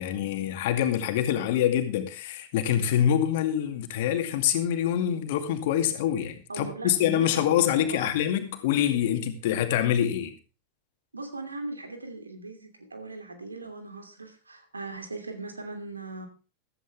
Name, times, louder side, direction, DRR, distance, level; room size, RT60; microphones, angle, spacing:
voice 1, 0.0-10.3, left 10 dB, 50° left, 7 dB, 2.3 m, -25 dB
voice 2, 6.5-8.1 9.5-10.3 11.1-16.3, right 2 dB, 80° right, 6 dB, 2.9 m, -39 dB
15.0 x 13.5 x 3.5 m, 0.33 s
figure-of-eight pair, 90°, 0 cm